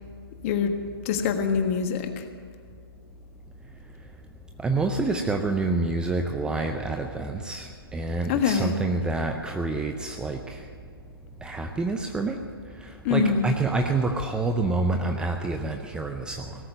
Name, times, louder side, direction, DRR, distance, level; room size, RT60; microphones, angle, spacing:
voice 1, 1.0-2.2 8.3-8.7 13.0-13.4, left 6 dB, 35° left, 6 dB, 1.4 m, -24 dB
voice 2, 4.6-10.6 11.4-12.4 13.1-16.5, right 3 dB, 5° right, 5 dB, 0.5 m, -27 dB
18.0 x 7.6 x 9.6 m, 2.3 s
figure-of-eight pair, 135°, 13 cm